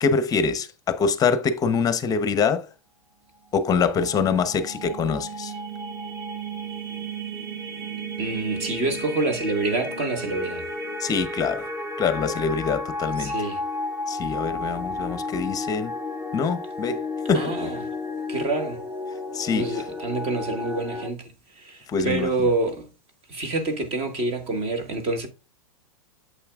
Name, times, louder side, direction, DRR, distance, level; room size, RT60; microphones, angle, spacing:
voice 1, 0.0-2.7 3.5-5.5 11.0-11.7 12.0-13.3 14.1-15.9 16.3-17.0 17.3-17.5 19.3-19.8 21.9-22.3, left 5 dB, 20° left, 0.8 m, -24 dB
sound 1, 3.6-21.1, left 1 dB, 10° right, 0.8 m, -33 dB
voice 2, 8.2-10.7 13.2-13.6 17.3-17.8 18.3-18.8 19.5-22.9 23.3-25.3, right 2 dB, 35° right, 1.6 m, -27 dB
8.5 x 6.5 x 2.4 m
hypercardioid pair, 130°, 18 cm